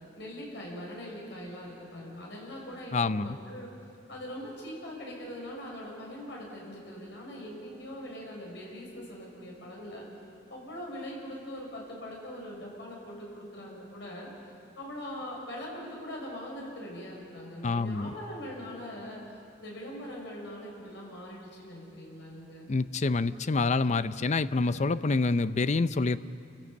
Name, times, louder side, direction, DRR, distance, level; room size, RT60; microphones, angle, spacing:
voice 1, 0.2-3.7 4.1-10.1 10.5-14.3 14.8-22.7, equal, 75° left, -3 dB, 7.1 m, -42 dB
voice 2, 2.9-3.4 17.6-18.1 22.7-26.2, left 3 dB, 40° left, 14 dB, 0.5 m, -27 dB
29.0 x 14.5 x 8.5 m, 2.5 s
head